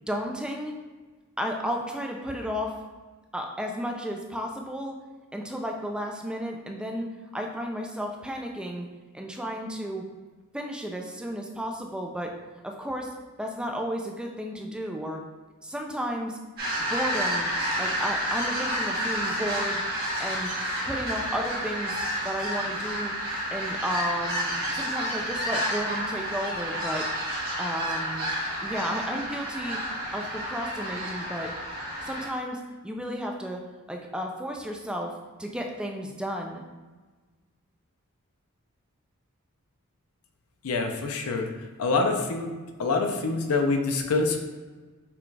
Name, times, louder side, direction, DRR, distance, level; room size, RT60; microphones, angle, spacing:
voice 1, 0.1-0.8 1.4-2.8 3.3-5.0 5.3-8.9 9.1-10.0 10.5-12.3 12.6-13.1 13.4-15.2 15.6-16.4 16.9-17.5 17.8-19.8 20.2-20.5 20.8-22.0 22.2-23.1 23.5-27.1 27.6-28.3 28.6-29.8 30.1-31.5 32.0-33.6 33.9-35.1 35.4-36.6, equal, 5° right, 1 dB, 0.3 m, -33 dB
sound 1, 16.6-32.3, equal, 45° right, 1.5 m, -30 dB
voice 2, 40.6-41.5 41.8-42.5 42.8-44.4, left 3 dB, 80° left, 4 dB, 0.6 m, -25 dB
5.9 x 2.3 x 3.2 m, 1.3 s
head